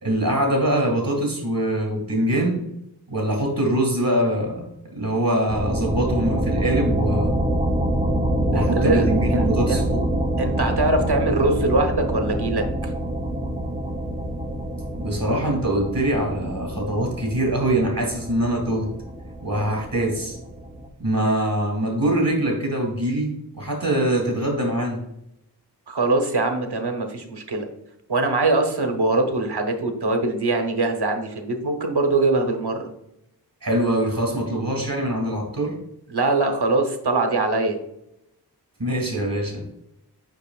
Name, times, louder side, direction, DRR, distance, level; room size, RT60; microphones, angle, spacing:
voice 1, 0.0-2.6 3.1-7.4 8.4-10.1 15.0-18.9 19.4-20.4 21.0-25.0 33.6-35.8 38.8-39.6, right 1 dB, 55° right, 0 dB, 2.1 m, -23 dB
sound 1, 5.5-20.9, right 1 dB, 15° right, 0.6 m, -26 dB
voice 2, 8.5-9.1 9.3-9.9 10.4-12.9 25.9-27.7 28.1-32.9 36.1-37.8, right 2 dB, 75° right, 5 dB, 1.0 m, -22 dB
6.6 x 5.9 x 2.4 m, 0.81 s
wide cardioid pair, 55°, 39 cm